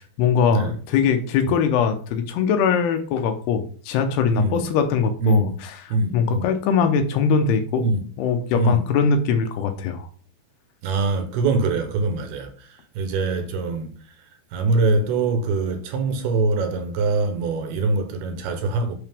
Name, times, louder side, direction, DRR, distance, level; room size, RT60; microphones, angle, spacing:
voice 1, 0.0-5.7 6.1-7.8 8.2-10.1, left 6 dB, 80° left, 3.0 m, -21 dB
voice 2, 4.3-4.7 5.2-5.6 5.9-6.5 7.8-8.1 8.5-8.8 10.8-18.9, right 3 dB, 75° right, 2.9 m, -23 dB
10.5 x 5.0 x 3.5 m
omnidirectional pair, 4.8 m